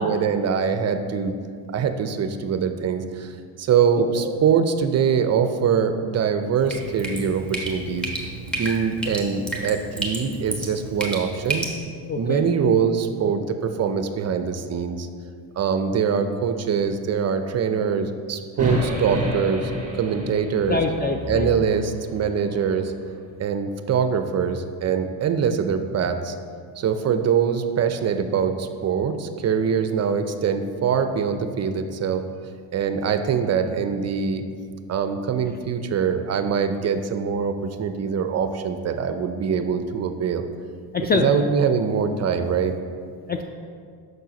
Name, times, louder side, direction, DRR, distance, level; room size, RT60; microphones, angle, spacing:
voice 1, 0.0-1.4 1.7-3.3 3.6-8.1 8.5-11.7 12.2-15.1 15.6-20.8 21.3-22.9 23.4-26.3 26.8-32.2 32.7-34.5 34.9-40.5 41.1-42.7, right 6 dB, 35° right, 8 dB, 0.5 m, -23 dB
Drip, 6.6-11.7, right 2 dB, ahead, 1.3 m, -31 dB
voice 2, 12.1-12.4 20.7-21.5 40.9-41.3 43.3-43.4, left 4 dB, 25° left, 5 dB, 0.3 m, -24 dB
sound 1, 18.6-22.8, equal, 15° right, 1.8 m, -29 dB
6.5 x 4.5 x 5.1 m, 2.1 s
supercardioid pair, 85°, 45 cm